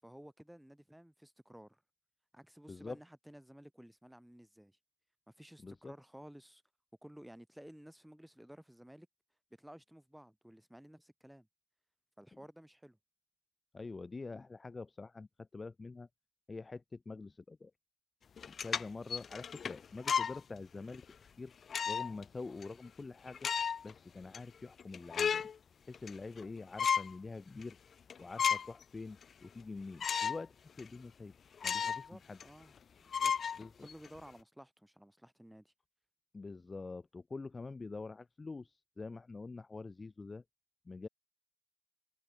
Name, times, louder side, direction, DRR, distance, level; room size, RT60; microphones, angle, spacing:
voice 1, 0.0-1.8 2.3-4.8 5.3-6.6 7.0-9.1 9.6-11.5 12.2-13.0 31.8-32.7 33.0-33.3 33.8-35.7, equal, 5° right, 7.2 m, -55 dB
voice 2, 5.6-5.9 13.7-16.1 16.5-17.7 18.6-21.5 21.9-23.4 23.8-25.4 25.9-27.8 28.2-31.3 31.6-32.4 33.6-33.9 36.3-40.4 40.8-41.1, left 3 dB, 25° left, 1.6 m, -46 dB
sound 1, 18.4-20.4 20.9-21.0 21.7-22.2 22.6-22.7 23.3-23.9 24.3-24.4 24.8-25.6 25.9-26.5 26.8-27.1 27.6-27.7 28.1-28.8 29.2-29.3 30.0-30.4 30.8-30.9 31.6-32.1 32.4-32.5 33.1-34.1, left 7 dB, 50° left, 0.6 m, -34 dB
cardioid pair, 80°, 0 cm